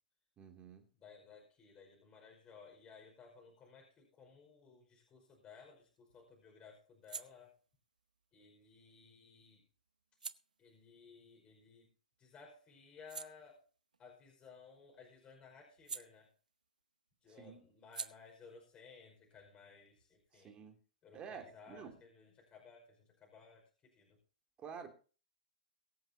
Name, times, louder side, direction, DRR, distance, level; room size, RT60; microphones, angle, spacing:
voice 1, 0.4-0.9 17.4-17.6 20.3-20.8 21.1-21.9 24.6-24.9, right 6 dB, 25° right, 5 dB, 3.0 m, -50 dB
voice 2, 0.9-7.6 8.3-9.6 10.6-11.9 12.2-13.7 14.0-16.3 17.2-20.5 21.0-24.1, left 5 dB, 25° left, 1 dB, 5.3 m, -58 dB
sound 1, 5.3-12.2 12.6-16.8 17.1-20.5, right 5 dB, 90° right, 0.8 m, -53 dB
23.0 x 7.8 x 2.8 m, 0.37 s
hypercardioid pair, 120°, 4 cm